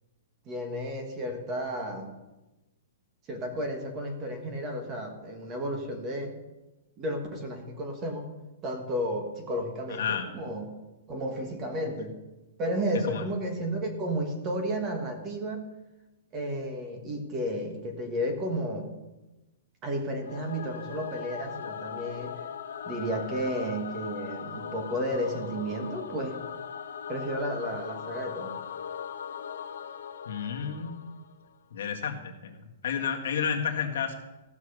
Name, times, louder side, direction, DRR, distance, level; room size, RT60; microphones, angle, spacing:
voice 1, 0.4-2.1 3.3-6.3 7.0-8.3 8.6-10.7 11.1-12.1 12.6-15.6 16.3-18.9 19.8-22.3 22.8-26.4 27.1-28.6, equal, 20° right, 4 dB, 1.4 m, -32 dB
voice 2, 9.9-10.3 13.0-13.3 30.3-31.1 31.7-34.1, left 7 dB, 60° left, 2 dB, 1.7 m, -31 dB
Singing / Musical instrument, 20.2-31.5, left 7 dB, 80° left, 1.0 m, -39 dB
15.5 x 6.1 x 6.6 m, 1.0 s
hypercardioid pair, 180°, 0 cm